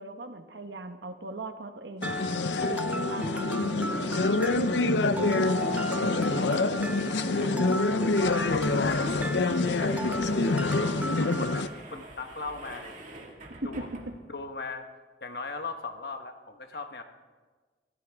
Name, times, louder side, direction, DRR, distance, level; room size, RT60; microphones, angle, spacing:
voice 1, 0.0-2.2 2.7-4.2 4.6-6.7 13.9-14.0, right 2 dB, 75° right, 7 dB, 1.2 m, -40 dB
sound 1, 2.0-11.7, left 3 dB, 85° left, 0.7 m, -26 dB
Mallet percussion, 2.0-11.6, right 1 dB, 10° right, 0.6 m, -36 dB
sound 2, 6.8-6.9 7.2-7.3 8.0-14.4, right 2 dB, 45° right, 2.1 m, -47 dB
voice 2, 7.3-13.3 13.6-13.9 14.3-14.9 15.2-17.0, left 3 dB, 60° left, 6 dB, 1.2 m, -39 dB
24.5 x 15.5 x 3.6 m, 1.4 s
head